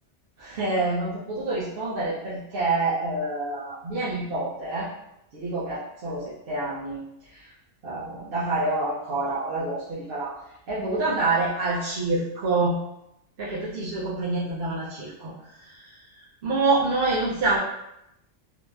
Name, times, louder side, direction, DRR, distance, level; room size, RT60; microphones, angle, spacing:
voice 1, 0.4-4.9 5.3-7.0 7.3-7.5 7.8-10.4 10.7-12.8 13.4-15.3 15.6-16.0 16.4-17.6, right 2 dB, 55° right, -8 dB, 0.8 m, -27 dB
3.0 x 2.5 x 2.2 m, 0.84 s
omnidirectional pair, 1.2 m